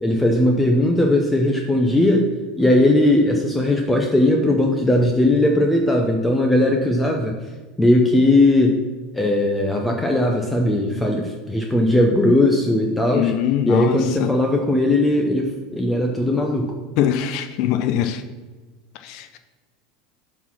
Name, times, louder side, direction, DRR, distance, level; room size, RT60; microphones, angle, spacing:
voice 1, 0.0-2.3 2.6-7.4 7.8-8.8 9.1-13.3 13.7-16.7, left 1 dB, 10° left, 2 dB, 0.8 m, -18 dB
voice 2, 13.1-14.3 17.0-18.2 19.0-19.4, left 10 dB, 55° left, 9 dB, 0.5 m, -22 dB
7.2 x 4.1 x 5.9 m, 1.3 s
hypercardioid pair, 80°, 0 cm